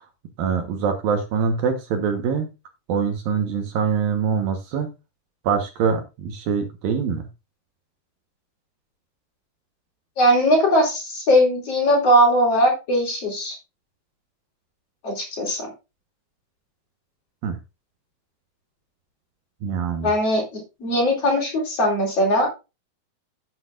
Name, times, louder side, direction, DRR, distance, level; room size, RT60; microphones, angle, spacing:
voice 1, 0.4-2.5 2.9-4.9 5.4-7.2 17.4-17.6 19.6-20.1, right 6 dB, 65° right, 5 dB, 2.7 m, -24 dB
voice 2, 10.2-13.6 15.0-15.7 20.0-22.5, equal, 35° left, -1 dB, 4.7 m, -20 dB
12.5 x 8.2 x 2.5 m, 0.27 s
omnidirectional pair, 4.7 m